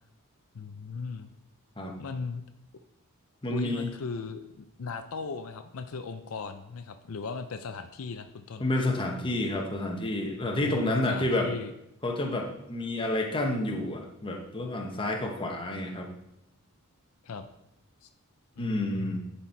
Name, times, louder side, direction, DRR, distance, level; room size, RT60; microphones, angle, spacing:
voice 1, 0.5-1.3 2.0-2.4 3.5-8.6 10.6-11.7 17.2-17.5 18.0-18.1 18.6-19.3, left 4 dB, 70° left, 8 dB, 0.5 m, -37 dB
voice 2, 3.4-3.9 8.6-11.5 12.0-16.1 18.6-19.2, left 1 dB, 25° left, 2 dB, 1.0 m, -29 dB
11.0 x 4.4 x 4.5 m, 0.83 s
head